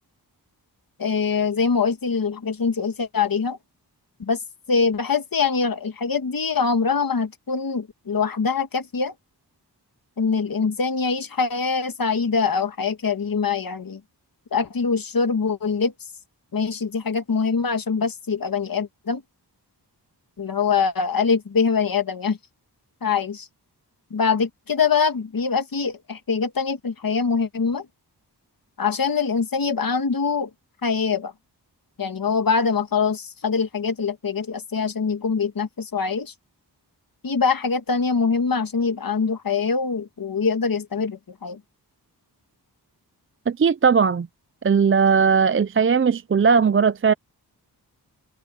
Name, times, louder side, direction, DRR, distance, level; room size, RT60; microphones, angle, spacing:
voice 1, 1.0-3.6 4.2-4.4 4.7-9.1 10.2-14.0 14.5-15.9 16.5-19.2 20.4-22.4 23.0-23.5 24.1-27.9 28.8-30.5 30.8-31.3 32.0-36.3 37.2-41.6, left 5 dB, 55° left, 1.6 m, -23 dB
voice 2, 43.5-44.3 44.6-47.1, right 6 dB, 30° right, 0.4 m, -18 dB
wide cardioid pair, 100°, 41 cm